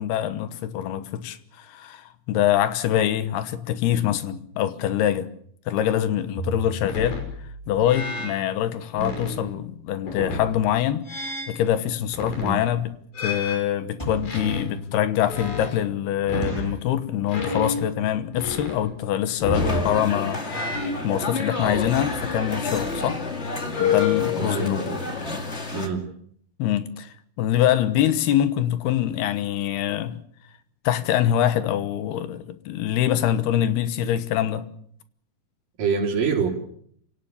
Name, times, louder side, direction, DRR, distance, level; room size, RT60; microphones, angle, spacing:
voice 1, 0.0-5.3 5.7-7.2 7.7-12.9 13.2-23.2 23.8-24.9 26.6-30.2 30.8-34.7, left 11 dB, 90° left, 3.2 m, -24 dB
sound 1, 6.4-8.3 8.9-9.4 10.0-10.6 11.0-11.6 12.1-12.6 13.1-15.9 16.2-16.7 17.3-18.1 18.4-18.8 19.4-19.9 20.5-22.4 22.7-23.2 23.7-24.4, left 4 dB, 65° left, 7.8 m, -30 dB
sound 2, 12.8-13.0 13.7-14.4 14.9-15.0 15.4-15.5 15.8-15.9 16.4-16.9 17.5-17.8 18.1-18.2 18.4-18.6 19.2-19.3 19.5-19.7 20.0-20.1 20.3-20.4, right 1 dB, 5° left, 6.6 m, -34 dB
sound 3, 19.5-25.9, left 3 dB, 25° left, 1.7 m, -30 dB
voice 2, 24.4-25.0 25.7-26.1 35.8-36.5, right 5 dB, 60° right, 4.7 m, -26 dB
27.5 x 17.5 x 7.1 m
omnidirectional pair, 4.5 m